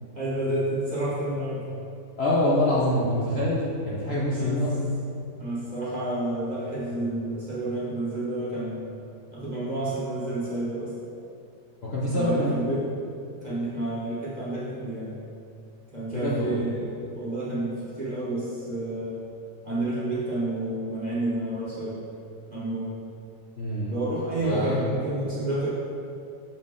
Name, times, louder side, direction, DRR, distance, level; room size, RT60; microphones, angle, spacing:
voice 1, 0.1-1.6 4.3-4.6 5.4-8.9 9.3-10.9 12.1-12.9 13.4-15.1 15.9-19.2 19.6-22.0 22.5-22.9 23.9-25.7, right 1 dB, 30° right, -8 dB, 1.1 m, -30 dB
voice 2, 2.2-4.9 11.9-12.6 16.1-16.6 23.6-24.1 24.4-24.8, left 1 dB, 50° left, -7 dB, 0.8 m, -25 dB
6.2 x 4.2 x 3.6 m, 2.5 s
omnidirectional pair, 1.8 m